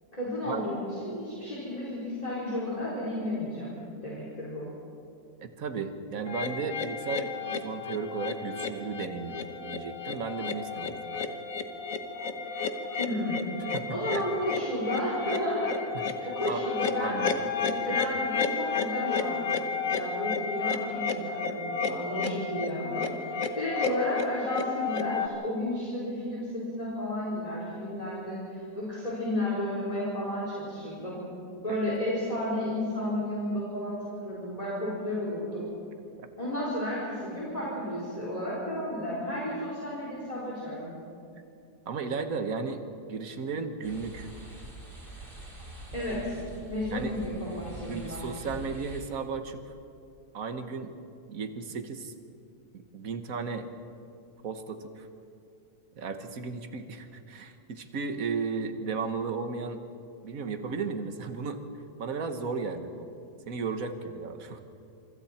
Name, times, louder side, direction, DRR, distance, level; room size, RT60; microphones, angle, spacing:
voice 1, 0.1-4.7 13.0-13.4 13.9-15.8 16.2-17.2 17.6-31.2 31.6-35.7 36.4-40.9 45.9-46.4 46.7-48.2, left 1 dB, 20° left, -7 dB, 4.4 m, -32 dB
voice 2, 5.4-11.3 13.7-13.8 14.1-14.2 16.2-16.6 16.9-17.4 17.9-18.0 31.7-31.8 41.9-42.8 43.1-44.3 46.9-47.1 47.9-49.6 50.3-50.9 51.3-52.1 52.7-53.7 54.4-55.1 56.0-59.8 60.2-61.6 62.0-63.0 63.5-64.6, right 5 dB, 55° right, 7 dB, 1.7 m, -35 dB
sound 1, 6.3-25.3, left 5 dB, 60° left, 1.5 m, -32 dB
sound 2, 43.8-49.0, right 1 dB, 30° right, 4.3 m, -44 dB
27.0 x 25.5 x 4.4 m, 2.6 s
omnidirectional pair, 1.8 m